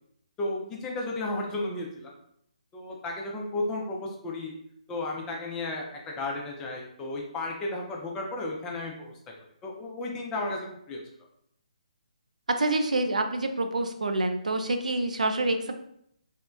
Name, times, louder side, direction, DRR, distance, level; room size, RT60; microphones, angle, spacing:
voice 1, 0.4-2.1 2.7-4.5 4.9-9.1 9.6-11.0, left 2 dB, 15° left, 0 dB, 0.3 m, -33 dB
voice 2, 12.6-15.8, right 2 dB, 70° right, 6 dB, 0.3 m, -27 dB
2.8 x 2.1 x 2.2 m, 0.71 s
figure-of-eight pair, 140°, 4 cm